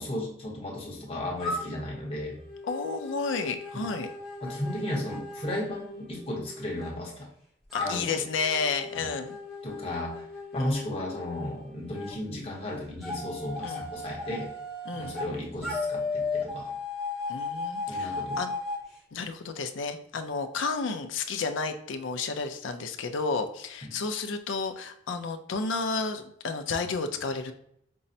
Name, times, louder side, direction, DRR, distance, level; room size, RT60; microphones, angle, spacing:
voice 1, 0.0-2.3 3.7-3.9 4.4-7.3 7.8-8.2 9.0-9.1 9.6-10.3 10.5-14.5 14.9-16.7 17.9-18.4 23.8-24.0, left 1 dB, 30° left, -2 dB, 0.9 m, -34 dB
sound 1, 1.4-6.9 7.7-12.1 13.0-15.3 15.6-18.8, left 3 dB, ahead, 0.6 m, -36 dB
voice 2, 2.6-4.1 7.7-9.4 10.6-10.9 13.6-13.8 14.9-15.2 17.3-18.5 19.1-27.5, left 4 dB, 75° left, 8 dB, 0.4 m, -32 dB
5.3 x 2.0 x 2.6 m, 0.71 s
head